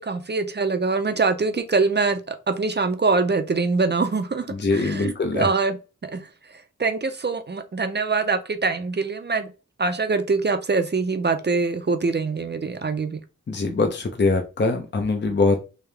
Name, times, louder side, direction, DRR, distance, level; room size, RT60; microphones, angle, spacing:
voice 1, 0.0-5.8 6.1-9.5 9.8-13.2, right 4 dB, 35° right, 0.6 m, -24 dB
voice 2, 4.6-5.5 13.5-15.6, left 3 dB, 35° left, 0.7 m, -22 dB
3.4 x 2.8 x 3.4 m
wide cardioid pair, 85°, 30 cm